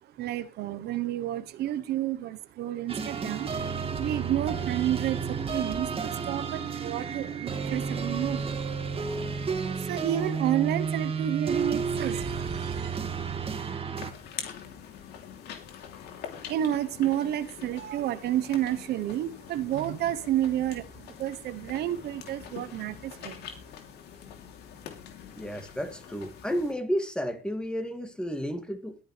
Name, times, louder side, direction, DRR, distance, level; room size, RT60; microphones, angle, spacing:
voice 1, 0.0-3.7 4.0-8.5 9.6-13.0 16.5-23.6, right 12 dB, 75° right, 1.0 m, -30 dB
sound 1, 2.9-14.1, right 5 dB, 35° right, 2.2 m, -31 dB
sound 2, 13.9-26.7, left 8 dB, 75° left, 3.1 m, -44 dB
voice 2, 25.4-28.9, equal, 5° left, 2.4 m, -32 dB
21.0 x 10.5 x 3.3 m
cardioid pair, 110°, 17 cm